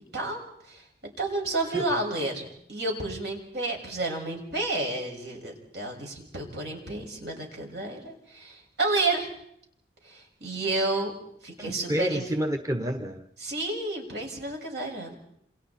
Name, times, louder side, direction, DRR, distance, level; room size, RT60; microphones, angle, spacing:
voice 1, 0.1-0.8 1.2-9.3 10.0-11.1 11.4-12.3 13.4-15.1, right 2 dB, 70° right, 1 dB, 6.6 m, -31 dB
voice 2, 11.6-13.3, equal, 20° right, 5 dB, 1.2 m, -29 dB
28.5 x 27.5 x 4.4 m, 0.71 s
head